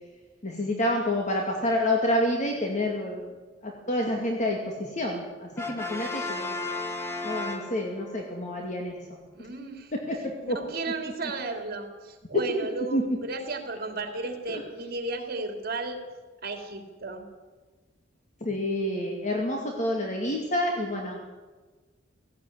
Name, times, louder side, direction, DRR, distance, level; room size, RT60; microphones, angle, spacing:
voice 1, 0.4-3.3 3.6-6.6 7.2-9.0 9.9-10.6 12.3-12.4 12.9-13.0 14.5-14.6 18.4-21.3, left 1 dB, 40° left, 1 dB, 2.4 m, -28 dB
Brass instrument, 5.6-8.2, left 3 dB, 15° left, 1.8 m, -34 dB
voice 2, 9.3-9.9 10.4-16.0 16.4-17.3, right 2 dB, 55° right, 6 dB, 3.0 m, -34 dB
17.5 x 16.5 x 9.4 m, 1.3 s
head